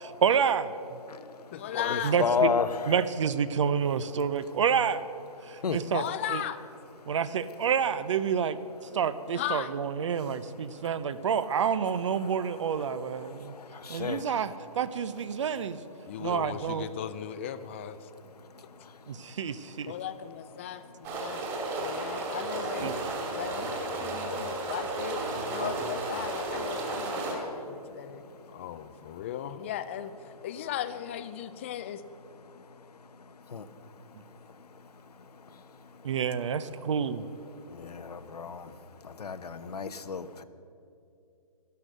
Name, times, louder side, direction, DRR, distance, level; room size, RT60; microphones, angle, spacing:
voice 1, 0.0-1.0 2.0-2.5 2.9-5.0 5.5-6.4 7.1-8.6 8.9-13.5 13.9-15.8 16.2-16.9 19.1-19.9 22.8-22.9 36.0-37.3, right 7 dB, 50° right, 15 dB, 0.7 m, -28 dB
voice 2, 1.2-2.2 5.9-6.6 9.4-9.7 16.1-18.0 19.9-21.4 21.8-22.9 23.3-28.2 28.5-30.1 30.4-32.0, left 10 dB, 20° left, 12 dB, 0.4 m, -37 dB
voice 3, 1.7-3.0 5.6-5.8 14.0-14.2 33.5-33.6 38.1-38.6 39.2-40.4, left 6 dB, 80° left, 11 dB, 0.9 m, -30 dB
sound 1, 21.0-27.3, right 2 dB, 25° right, 2.6 m, -33 dB
12.5 x 12.0 x 6.6 m, 2.7 s
hypercardioid pair, 155°, 20 cm